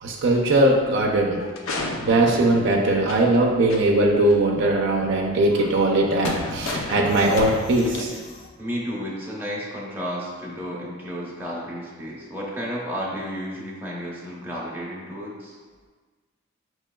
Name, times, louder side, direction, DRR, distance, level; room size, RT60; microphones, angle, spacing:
voice 1, 0.0-1.4 2.0-8.1, right 1 dB, 60° right, -1 dB, 0.4 m, -20 dB
sound 1, 1.4-3.4 3.7-3.8 4.3-4.4 5.5-8.5, left 2 dB, 85° left, 0.5 m, -33 dB
voice 2, 8.6-15.6, equal, 10° right, -6 dB, 0.7 m, -32 dB
5.3 x 3.0 x 2.2 m, 1.4 s
head